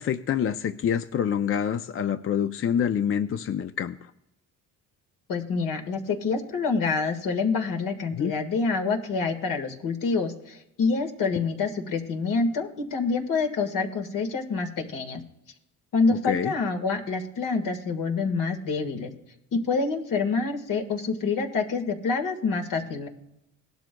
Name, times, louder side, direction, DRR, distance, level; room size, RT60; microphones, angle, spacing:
voice 1, 0.0-4.1 8.1-8.3 16.1-16.5, left 8 dB, 40° left, 10 dB, 0.5 m, -27 dB
voice 2, 5.3-15.2 15.9-19.1 19.5-23.1, left 4 dB, 65° left, 5 dB, 1.8 m, -27 dB
18.0 x 12.0 x 2.3 m, 0.87 s
cardioid pair, 90°, 35 cm